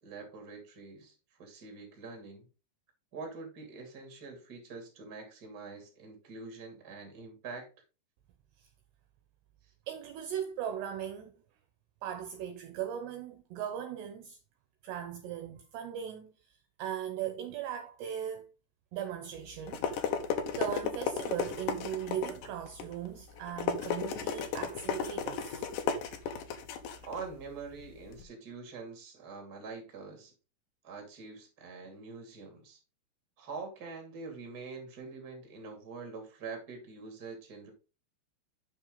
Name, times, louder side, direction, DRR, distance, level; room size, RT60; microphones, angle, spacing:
voice 1, 0.0-2.5 3.1-7.7 26.2-26.3 27.0-30.3 30.8-32.8 33.4-37.7, right 4 dB, 30° right, 2.0 m, -45 dB
voice 2, 9.9-11.4 12.0-14.4 14.8-16.3 16.8-18.5 18.9-20.1 20.6-25.7, right 9 dB, 75° right, 2.6 m, -38 dB
sound 1, 19.4-28.2, left 7 dB, 85° left, 1.9 m, -35 dB
8.7 x 6.1 x 3.9 m
omnidirectional pair, 5.5 m